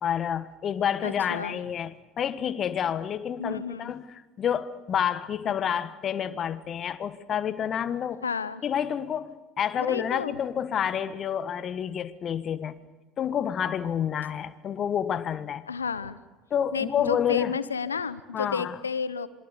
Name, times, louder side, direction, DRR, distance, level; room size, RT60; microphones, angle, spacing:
voice 1, 0.0-8.2 8.6-12.8 13.2-15.7 16.5-17.6 18.3-18.7, left 8 dB, 40° left, 1.4 m, -29 dB
voice 2, 1.0-1.6 3.4-3.9 8.2-8.6 9.8-10.4 15.7-16.2 16.7-19.3, left 5 dB, 85° left, 0.9 m, -31 dB
27.0 x 23.5 x 7.0 m
figure-of-eight pair, 65°, 0 cm